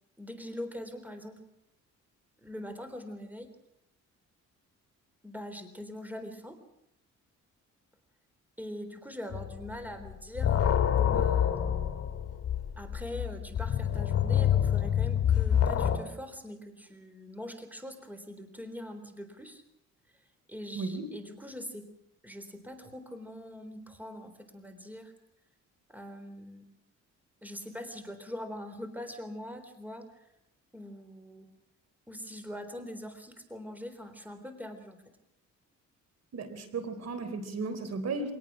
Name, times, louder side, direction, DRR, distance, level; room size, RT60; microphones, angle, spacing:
voice 1, 0.2-1.4 2.4-3.5 5.2-6.6 8.6-11.8 12.8-19.6 20.5-21.8 22.2-25.1 25.9-26.6 27.4-30.2 30.7-31.5 32.1-35.0, equal, 5° right, 8 dB, 3.7 m, -42 dB
sound 1, 9.3-9.8 10.1-16.0, left 9 dB, 50° left, 2.4 m, -27 dB
voice 2, 20.7-21.1 36.3-38.3, right 3 dB, 60° right, 10 dB, 3.7 m, -35 dB
25.0 x 19.0 x 6.2 m, 0.84 s
cardioid pair, 90°, 30 cm